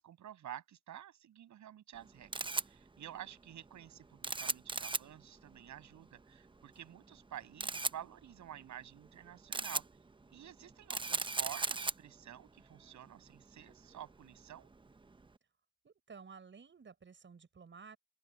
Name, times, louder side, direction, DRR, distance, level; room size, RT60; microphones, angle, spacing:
voice 1, 0.0-9.9 10.3-14.7, right 11 dB, 70° right, 7.4 m, -50 dB
Camera, 1.9-15.3, right 3 dB, 15° right, 0.8 m, -41 dB
voice 2, 15.8-18.0, right 5 dB, 40° right, 7.3 m, -54 dB
open air
cardioid pair, 90°, 30 cm